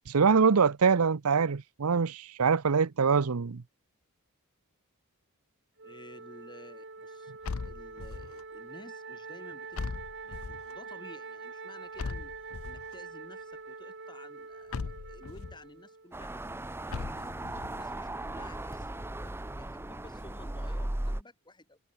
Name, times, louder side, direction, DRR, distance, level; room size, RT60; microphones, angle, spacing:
voice 1, 0.1-3.6, right 5 dB, 90° right, 0.7 m, -24 dB
voice 2, 5.8-7.3 7.6-16.4 16.8-21.8, left 1 dB, 20° left, 3.9 m, -53 dB
Wind instrument woodwind instrument, 5.8-16.1, right 4 dB, 55° right, 4.0 m, -45 dB
sound 1, 7.4-8.4 9.7-10.7 12.0-12.9 14.7-15.6 16.9-17.8, left 4 dB, 70° left, 0.6 m, -38 dB
sound 2, 16.1-21.2, right 1 dB, 10° right, 0.7 m, -37 dB
head